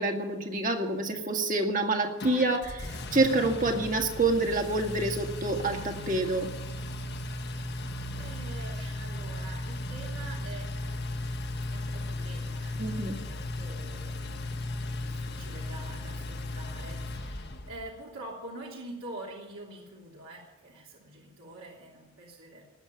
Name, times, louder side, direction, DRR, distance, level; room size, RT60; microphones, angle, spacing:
voice 1, 0.0-6.5 12.8-13.2, right 2 dB, 35° right, 3 dB, 1.9 m, -27 dB
Engine, 2.2-17.9, left 2 dB, 50° left, 1.3 m, -36 dB
voice 2, 7.5-11.2 11.7-22.6, right 2 dB, 70° right, -4 dB, 3.1 m, -46 dB
19.0 x 7.4 x 9.0 m, 1.2 s
head